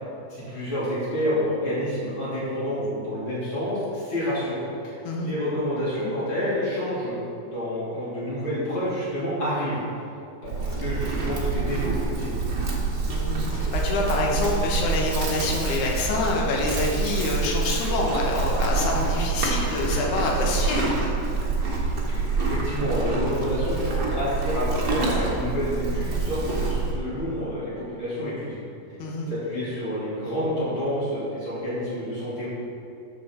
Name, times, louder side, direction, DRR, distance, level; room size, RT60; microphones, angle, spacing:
voice 1, 0.3-7.2 7.4-9.8 10.4-12.4 22.1-28.6 29.3-32.5, equal, 40° left, -9 dB, 3.3 m, -28 dB
Livestock farm animals working animals, 10.4-27.0, right 3 dB, 50° right, 1.2 m, -26 dB
voice 2, 13.1-21.0 29.0-29.3, left 2 dB, 75° left, -1 dB, 2.7 m, -26 dB
12.5 x 6.2 x 4.5 m, 2.6 s
omnidirectional pair, 3.7 m